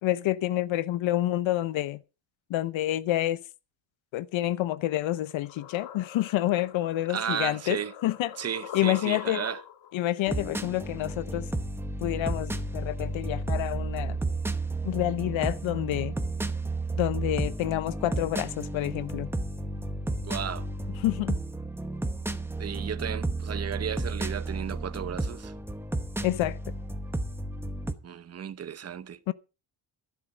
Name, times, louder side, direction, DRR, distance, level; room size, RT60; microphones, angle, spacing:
voice 1, 0.0-2.0 2.5-3.4 4.1-8.3 8.7-9.4 9.9-11.5 12.0-14.2 14.8-16.1 17.0-19.3 21.0-21.4 26.2-26.6 29.3-29.4, left 14 dB, 85° left, 0.8 m, -28 dB
sound 1, 4.9-10.0, left 9 dB, 65° left, 1.6 m, -43 dB
voice 2, 7.1-7.9 8.4-9.6 20.2-20.7 22.6-25.5 28.0-29.2, right 8 dB, 35° right, 0.8 m, -34 dB
sound 2, 10.3-27.9, right 2 dB, 5° right, 1.0 m, -32 dB
13.5 x 12.0 x 5.2 m
cardioid pair, 180°, 45 cm